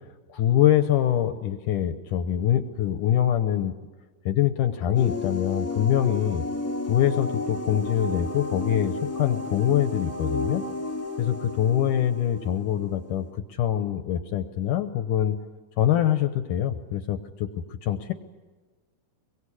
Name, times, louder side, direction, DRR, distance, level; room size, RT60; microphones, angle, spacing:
voice 1, 0.3-3.7 4.3-6.4 6.9-10.7 11.2-15.4 15.8-17.5 17.8-18.1, left 11 dB, 70° left, 9 dB, 2.3 m, -24 dB
sound 1, 4.9-13.3, left 2 dB, 15° left, 0.5 m, -32 dB
25.0 x 23.0 x 9.9 m, 1.3 s
omnidirectional pair, 4.2 m